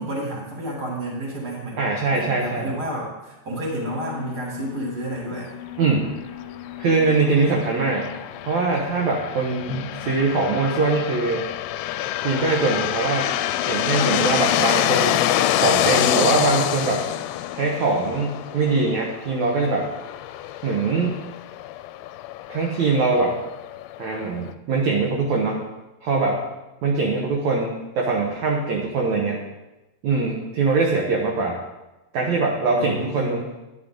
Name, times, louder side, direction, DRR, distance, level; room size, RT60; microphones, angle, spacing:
voice 1, 0.0-5.5 32.7-33.4, right 1 dB, 25° right, -3 dB, 2.8 m, -31 dB
voice 2, 1.8-2.7 5.8-6.1 6.8-8.1 8.4-9.7 10.0-11.5 12.2-13.3 13.7-17.0 17.5-19.9 20.6-21.2 22.5-23.4 24.0-25.7 26.0-26.4 26.8-29.4 30.0-31.6 32.1-33.4, right 3 dB, 65° right, -1 dB, 1.9 m, -22 dB
Alarm, 3.7-10.8, left 11 dB, 65° left, 2.2 m, -40 dB
sound 1, 6.9-24.5, left 12 dB, 85° left, 2.6 m, -26 dB
Drum, 9.7-12.4, left 1 dB, 10° right, 1.0 m, -39 dB
12.0 x 10.0 x 3.8 m, 1.0 s
omnidirectional pair, 4.7 m